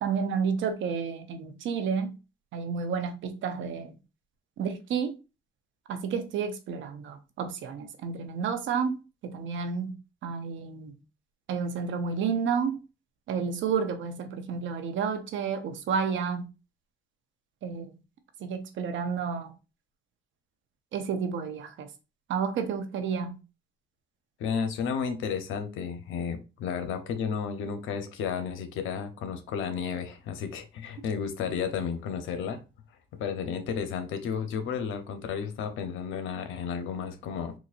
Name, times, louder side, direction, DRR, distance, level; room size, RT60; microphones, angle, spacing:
voice 1, 0.0-2.1 2.5-4.0 4.6-5.2 5.9-9.9 10.2-10.9 11.5-12.8 13.3-16.4 17.6-17.9 18.4-19.5 20.9-21.9 22.3-23.4, right 6 dB, 75° right, 0.7 m, -31 dB
voice 2, 24.4-32.6 33.2-37.5, left 6 dB, 90° left, 0.7 m, -32 dB
4.0 x 2.5 x 2.5 m
cardioid pair, 90°, 20 cm